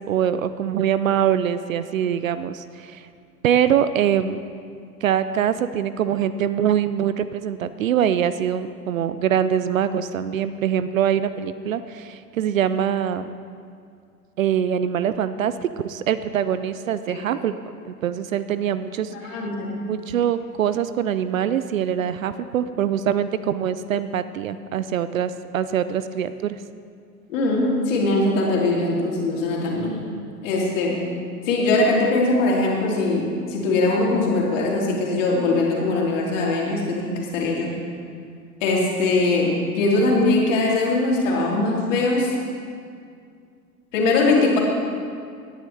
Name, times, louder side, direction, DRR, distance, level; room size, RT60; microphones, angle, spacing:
voice 1, 0.1-3.1 3.4-4.4 5.0-13.3 14.4-17.5 17.9-19.4 19.9-26.6, right 9 dB, 55° right, 13 dB, 0.5 m, -23 dB
voice 2, 19.1-19.8 27.3-30.0 30.4-31.0 31.5-37.7 38.6-39.5 39.7-42.3 43.9-44.6, left 2 dB, 50° left, -2 dB, 3.0 m, -21 dB
18.0 x 10.0 x 3.3 m, 2.3 s
figure-of-eight pair, 100°, 49 cm